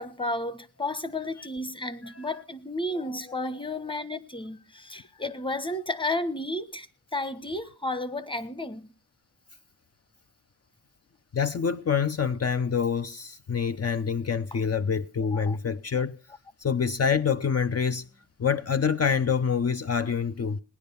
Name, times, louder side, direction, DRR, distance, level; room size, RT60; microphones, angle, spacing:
voice 1, 0.0-6.9 7.1-8.9 15.3-15.6, left 2 dB, 15° left, 1.3 m, -32 dB
voice 2, 11.3-16.2 16.6-18.0 18.4-20.6, left 6 dB, 55° left, 0.7 m, -26 dB
18.5 x 10.5 x 6.9 m
wide cardioid pair, 100°, 30 cm